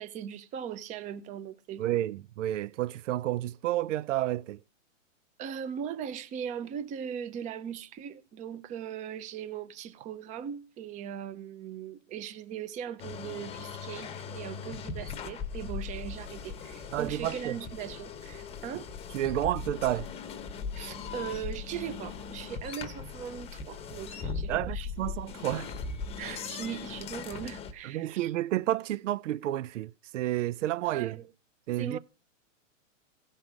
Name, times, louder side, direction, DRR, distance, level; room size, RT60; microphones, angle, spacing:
voice 1, 0.0-1.9 5.4-18.9 20.7-25.1 26.2-28.3 30.8-31.3 31.8-32.0, right 8 dB, 20° right, 0.7 m, -39 dB
voice 2, 1.8-4.6 16.9-17.6 19.1-20.1 24.5-25.7 27.8-31.2 31.7-32.0, right 14 dB, 70° right, 0.6 m, -30 dB
sound 1, 13.0-27.7, left 5 dB, 15° left, 1.0 m, -39 dB
16.0 x 5.5 x 6.1 m
hypercardioid pair, 145°, 39 cm